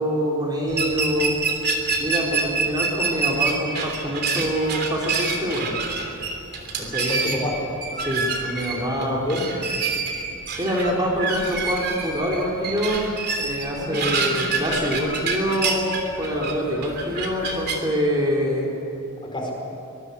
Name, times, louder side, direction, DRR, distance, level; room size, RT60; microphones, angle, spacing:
voice 1, 0.0-1.4 2.0-5.7 6.8-7.1 8.0-9.2 10.6-13.1 13.4-15.9 16.2-18.7, equal, 20° right, -3 dB, 3.7 m, -25 dB
sound 1, 0.7-17.8, right 4 dB, 45° right, 3.2 m, -27 dB
voice 2, 7.1-7.5 9.0-9.4 13.7-14.5 19.2-19.5, left 1 dB, 20° left, 0 dB, 4.7 m, -29 dB
24.0 x 22.5 x 8.4 m, 3.0 s
head